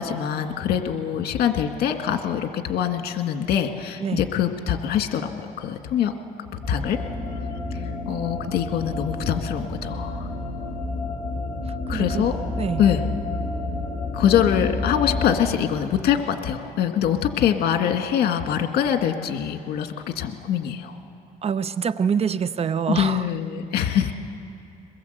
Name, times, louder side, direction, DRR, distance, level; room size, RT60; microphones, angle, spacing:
voice 1, 0.0-5.3 5.6-6.1 6.7-7.0 7.7-10.3 11.9-12.4 12.8-13.1 14.1-21.0 22.9-24.1, left 9 dB, 65° left, 6 dB, 1.9 m, -24 dB
sound 1, 6.6-15.3, left 2 dB, 15° left, 7.0 m, -30 dB
voice 2, 11.9-12.3 12.6-12.8 21.4-23.3, right 7 dB, 35° right, 14 dB, 0.7 m, -25 dB
22.5 x 21.0 x 8.1 m, 2.7 s
cardioid pair, 110°, 17 cm